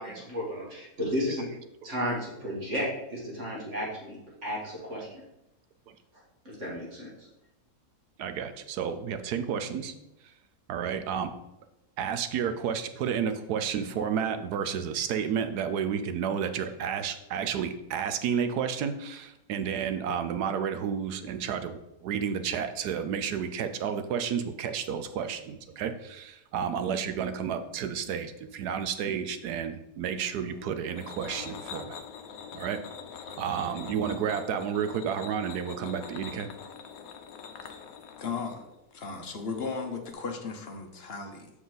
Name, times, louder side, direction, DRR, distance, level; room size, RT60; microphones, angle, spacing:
voice 1, 0.0-1.5 1.8-5.2 6.4-7.1, equal, 45° right, -5 dB, 2.6 m, -33 dB
voice 2, 8.2-9.9 10.7-11.3 12.0-32.0 32.5-32.8 33.4-36.5, right 7 dB, 80° right, 9 dB, 1.2 m, -31 dB
sound 1, 30.1-40.1, left 7 dB, 70° left, 1.1 m, -44 dB
voice 3, 38.2-38.6 38.9-41.5, left 4 dB, 45° left, 4 dB, 1.0 m, -36 dB
7.2 x 6.0 x 4.0 m, 0.89 s
omnidirectional pair, 1.7 m